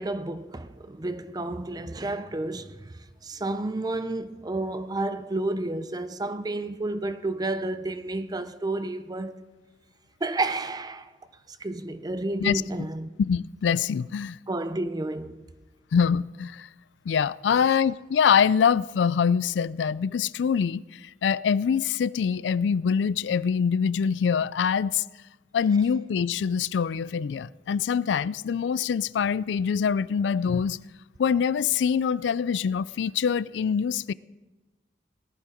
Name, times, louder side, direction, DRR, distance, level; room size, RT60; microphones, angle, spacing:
voice 1, 0.0-9.5 10.2-11.1 11.5-13.1 14.5-15.4 17.5-17.7, right 2 dB, 25° right, 0.5 m, -31 dB
voice 2, 13.2-14.4 15.9-16.7 17.1-25.0 25.5-30.8 31.2-34.1, left 7 dB, 85° left, 0.3 m, -24 dB
18.0 x 11.0 x 5.0 m
head